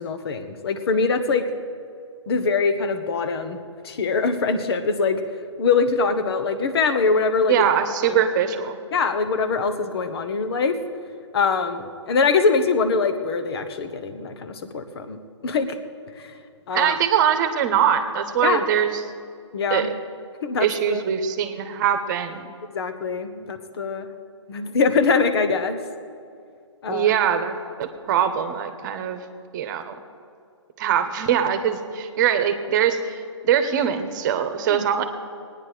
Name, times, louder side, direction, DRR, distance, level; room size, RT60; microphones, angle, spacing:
voice 1, 0.0-1.5 2.3-3.6 3.8-5.2 5.6-7.7 8.0-8.2 8.9-10.8 11.3-15.2 15.4-15.8 16.2-16.3 16.7-16.9 18.4-18.6 19.5-19.9 20.4-21.0 22.7-24.1 24.5-25.8 26.8-27.2 34.7-34.9, left 4 dB, 55° left, 9 dB, 1.3 m, -23 dB
voice 2, 7.5-8.8 16.7-19.0 19.7-19.9 20.6-22.5 26.9-29.2 29.5-29.9 30.8-35.0, right 9 dB, 40° right, 9 dB, 1.1 m, -22 dB
19.0 x 9.7 x 5.0 m, 2.3 s
figure-of-eight pair, 130°, 16 cm